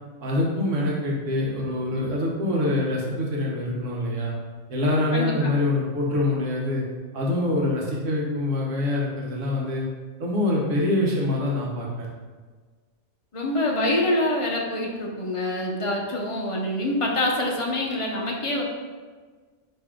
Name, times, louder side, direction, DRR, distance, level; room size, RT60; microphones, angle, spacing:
voice 1, 0.2-4.3 4.7-6.8 7.1-9.8 10.2-12.1, left 1 dB, 90° right, -3 dB, 1.3 m, -25 dB
voice 2, 5.1-5.5 13.3-18.6, left 1 dB, 35° left, -1 dB, 0.6 m, -25 dB
4.5 x 3.0 x 3.7 m, 1.4 s
omnidirectional pair, 1.2 m